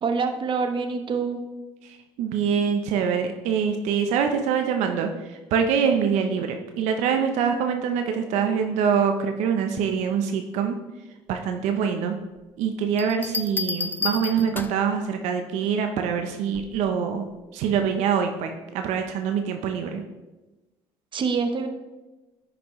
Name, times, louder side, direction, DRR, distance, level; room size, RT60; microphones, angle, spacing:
voice 1, 0.0-1.4 21.1-21.7, right 5 dB, 45° right, 7 dB, 0.9 m, -25 dB
voice 2, 2.2-10.8 11.3-12.2 12.6-20.0, right 7 dB, 75° right, 5 dB, 0.7 m, -24 dB
sound 1, 13.0-14.9 16.5-16.9, left 4 dB, 15° left, 0.5 m, -31 dB
10.0 x 6.0 x 3.1 m, 1.1 s
supercardioid pair, 80°, 12 cm